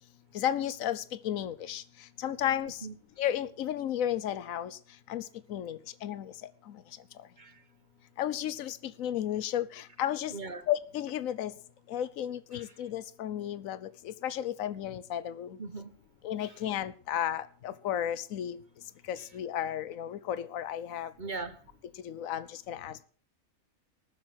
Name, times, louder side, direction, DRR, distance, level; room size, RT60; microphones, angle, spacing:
voice 1, 0.3-2.9 3.2-4.8 5.1-6.3 6.7-6.8 7.2-7.3 8.2-10.3 10.7-11.5 11.9-15.6 16.2-18.6 19.0-21.1 22.0-23.0, left 11 dB, 75° left, 1.2 m, -33 dB
voice 2, 10.3-10.7 12.5-12.7 15.6-15.9 16.4-16.6 21.2-21.6, right 4 dB, 35° right, 1.1 m, -40 dB
19.0 x 7.5 x 5.9 m
omnidirectional pair, 1.4 m